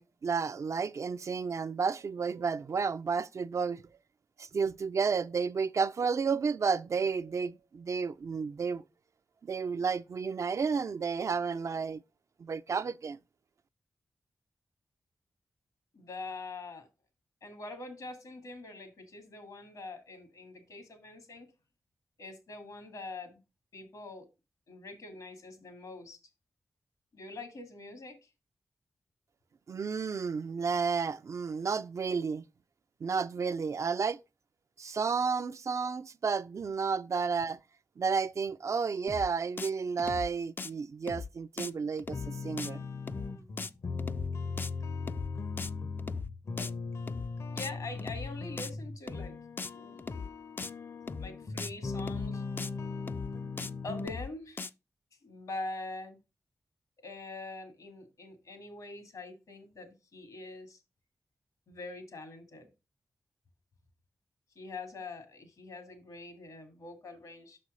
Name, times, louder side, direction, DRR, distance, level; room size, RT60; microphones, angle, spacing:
voice 1, 0.0-3.8 4.4-8.8 9.4-12.0 12.4-13.2 29.7-32.4 33.0-34.2 34.8-37.6 38.0-42.8, right 5 dB, 55° right, 0.4 m, -32 dB
voice 2, 15.9-16.9 17.4-21.5 22.2-23.4 23.7-24.3 24.7-26.2 27.1-28.2 46.5-46.7 47.5-49.3 49.7-50.2 51.2-52.4 53.8-54.7 55.2-56.2 57.0-60.8 61.7-62.7 64.5-67.6, left 2 dB, 75° left, 1.8 m, -44 dB
sound 1, 39.1-39.3 39.6-39.7 40.0-40.3 40.6-40.7 41.1-41.3 41.6-41.7 42.0-42.3 42.6-42.7 43.1-43.3 43.6-43.7 44.0-44.3 44.6-44.7 45.1-45.3 45.6-45.7 46.0-46.3 46.6-46.7 47.1-47.3 47.6-47.7 48.0-48.3 48.6-48.7 49.1-49.3 49.6-49.7 50.0-50.3 50.6-50.7 51.1-51.3 51.6-51.7 52.0-52.3 52.6-52.7 53.1-53.3 53.6-53.7 54.0-54.3 54.6-54.7, left 4 dB, 35° left, 0.3 m, -39 dB
sound 2, 42.1-54.1, left 4 dB, 60° left, 0.8 m, -38 dB
6.1 x 4.3 x 4.9 m
cardioid pair, 50°, 6 cm